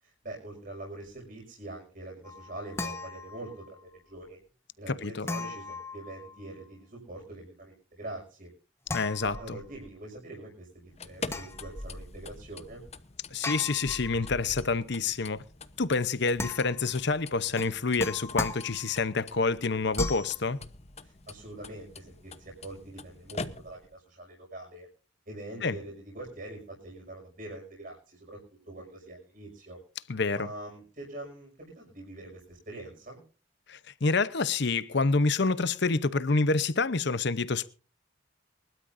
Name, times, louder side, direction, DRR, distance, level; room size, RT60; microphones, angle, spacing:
voice 1, 0.0-4.4 4.8-8.5 9.2-12.8 21.0-24.9 25.3-28.4 28.7-29.8 30.3-33.2, right 1 dB, 45° right, 6.0 m, -44 dB
sound 1, 2.2-3.8 5.2-6.6 8.9-9.9 11.2-12.3 13.4-14.8 16.4-17.0 17.6-19.1 19.9-20.4, left 2 dB, 15° left, 1.4 m, -38 dB
voice 2, 4.9-5.3 8.9-9.3 13.3-15.4 15.8-20.6 25.6-25.8 30.1-30.5 33.7-37.7, left 4 dB, 60° left, 0.9 m, -27 dB
sound 2, 10.8-24.0, left 3 dB, 35° left, 0.9 m, -45 dB
24.5 x 12.5 x 2.7 m
head